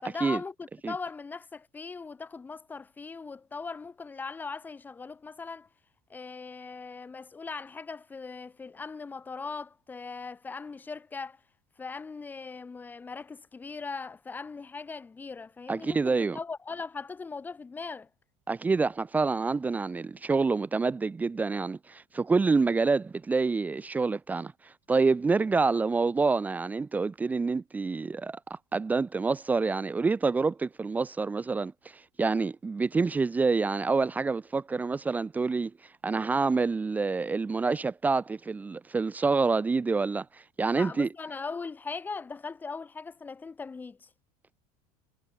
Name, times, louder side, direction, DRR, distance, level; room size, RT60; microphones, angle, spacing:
voice 1, 0.0-5.7 6.1-11.4 11.8-18.1 40.7-44.1, left 4 dB, 15° left, 4.5 m, -39 dB
voice 2, 15.7-16.4 18.5-35.7 36.0-41.1, right 4 dB, 10° right, 1.1 m, -27 dB
cardioid pair, 160°, 13 cm